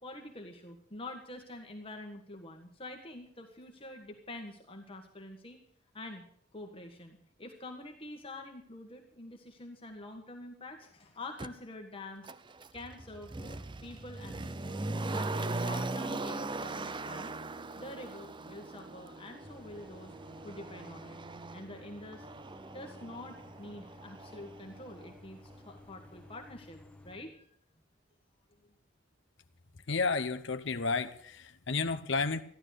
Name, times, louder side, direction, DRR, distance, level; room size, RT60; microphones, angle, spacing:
voice 1, 0.0-5.6 5.9-6.2 6.5-12.3 12.7-14.8 15.1-17.4 17.8-20.1 20.4-21.2 21.5-22.3 22.7-25.4 25.6-27.6, left 2 dB, 30° left, 3 dB, 1.6 m, -46 dB
Motor vehicle (road), 11.4-11.5 12.2-25.2 25.5-25.6, right 2 dB, 25° right, 0.6 m, -40 dB
sound 1, 19.4-27.2, left 2 dB, 5° left, 1.3 m, -54 dB
voice 2, 29.9-32.4, left 4 dB, 65° left, 8 dB, 0.8 m, -31 dB
14.0 x 12.0 x 6.6 m, 0.66 s
head